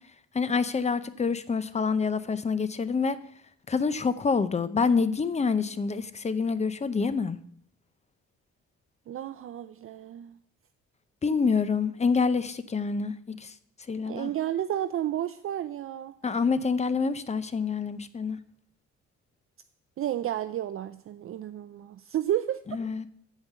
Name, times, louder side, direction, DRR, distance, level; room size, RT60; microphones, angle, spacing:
voice 1, 0.3-3.2 3.7-7.4 11.2-13.5 13.9-14.3 16.2-18.4 22.7-23.1, left 5 dB, 20° left, 14 dB, 0.6 m, -27 dB
voice 2, 9.1-10.3 14.1-16.1 20.0-22.6, right 11 dB, 45° right, 11 dB, 0.4 m, -31 dB
8.2 x 5.2 x 7.3 m, 0.64 s
cardioid pair, 90°, 30 cm